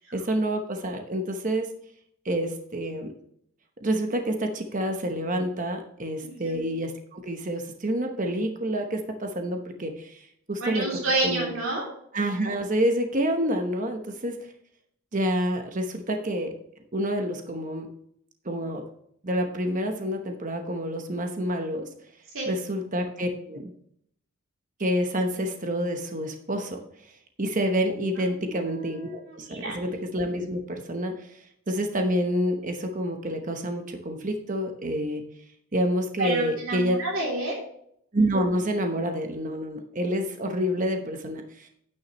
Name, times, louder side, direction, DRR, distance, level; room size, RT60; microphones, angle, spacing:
voice 1, 0.1-1.7 2.2-3.1 3.8-10.9 11.2-11.5 12.1-14.4 15.1-16.5 16.9-17.9 18.4-18.8 19.2-21.9 22.5-23.7 24.8-26.8 27.4-31.3 31.7-35.2 35.7-37.0 38.1-41.7, equal, 35° right, 4 dB, 1.0 m, -28 dB
voice 2, 6.2-6.6 10.6-11.9 22.3-22.5 28.3-29.8 36.2-37.6, right 2 dB, 65° right, -3 dB, 3.0 m, -29 dB
9.6 x 9.2 x 3.0 m, 0.69 s
head